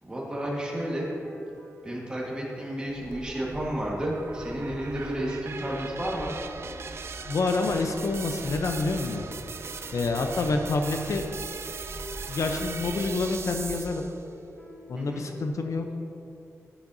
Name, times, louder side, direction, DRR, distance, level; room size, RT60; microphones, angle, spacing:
voice 1, 0.0-1.1 1.8-6.3 15.0-15.2, right 1 dB, 15° right, -3 dB, 1.5 m, -32 dB
sound 1, 1.2-15.5, equal, 25° left, 0.9 m, -47 dB
sound 2, 2.9-13.9, right 1 dB, 35° right, 0.8 m, -44 dB
sound 3, 3.1-14.2, right 5 dB, 50° right, 0.4 m, -40 dB
voice 2, 7.3-9.3 9.9-11.2 12.3-14.0 14.9-16.0, left 3 dB, 70° left, 5 dB, 0.6 m, -27 dB
10.0 x 10.0 x 2.6 m, 2.6 s
wide cardioid pair, 180°, 6 cm